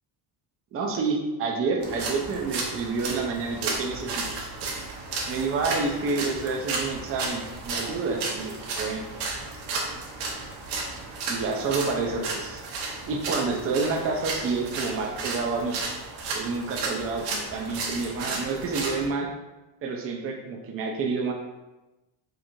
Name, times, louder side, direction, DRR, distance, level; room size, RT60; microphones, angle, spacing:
voice 1, 0.7-4.5 5.3-9.1 11.3-12.6 13.1-15.8 16.3-19.3 19.8-21.3, right 4 dB, 35° right, 2 dB, 0.4 m, -29 dB
sound 1, 1.8-19.1, right 3 dB, 70° right, 0.9 m, -33 dB
4.4 x 2.4 x 2.6 m, 1.1 s
cardioid pair, 170°, 45 cm